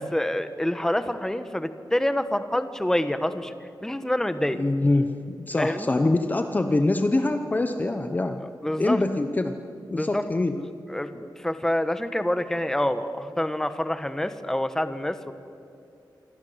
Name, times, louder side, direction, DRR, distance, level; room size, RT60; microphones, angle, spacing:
voice 1, 0.0-3.5 3.8-4.6 5.6-5.9 8.4-9.0 9.9-10.2 10.6-15.3, left 1 dB, 5° left, 10 dB, 1.2 m, -27 dB
voice 2, 4.5-8.5 8.8-9.6 9.9-10.6, left 2 dB, 20° left, 7 dB, 1.0 m, -24 dB
27.0 x 25.0 x 8.0 m, 2.6 s
wide cardioid pair, 160°, 8 cm